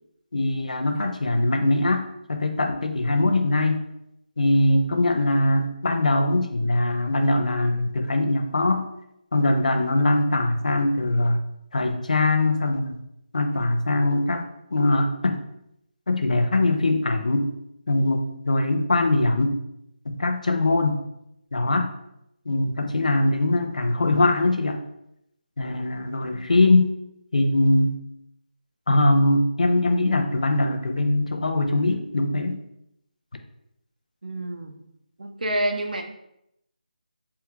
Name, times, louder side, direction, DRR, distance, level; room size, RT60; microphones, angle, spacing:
voice 1, 0.3-3.8 4.4-8.9 9.3-11.4 11.7-13.0 13.3-15.4 16.1-17.5 17.9-19.6 20.1-21.0 21.5-21.9 22.5-24.8 25.6-26.9 27.3-28.0 28.9-32.6, left 2 dB, 55° left, 6 dB, 0.5 m, -22 dB
voice 2, 34.2-34.7 35.2-36.0, right 1 dB, 65° right, 3 dB, 0.6 m, -27 dB
3.5 x 2.3 x 4.4 m, 0.81 s
figure-of-eight pair, 175°, 5 cm